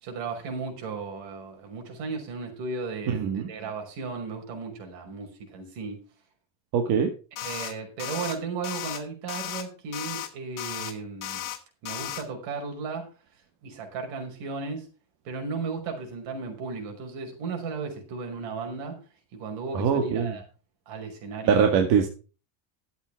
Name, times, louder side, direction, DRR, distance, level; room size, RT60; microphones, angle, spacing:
voice 1, 0.0-6.0 7.4-11.4 11.8-13.1 13.6-14.9 15.2-19.0 19.3-20.4 20.9-21.7, right 4 dB, 75° right, 3 dB, 5.7 m, -35 dB
voice 2, 3.1-3.5 6.7-7.1 19.7-20.4 21.5-22.1, right 6 dB, 55° right, 4 dB, 2.0 m, -22 dB
sound 1, 7.4-7.7 8.0-8.3 8.6-9.0 9.3-9.6 9.9-10.3 10.6-10.9 11.2-11.6 11.9-12.2, left 12 dB, 45° left, 2.2 m, -35 dB
13.0 x 8.1 x 4.8 m, 0.34 s
cardioid pair, 170°, 43 cm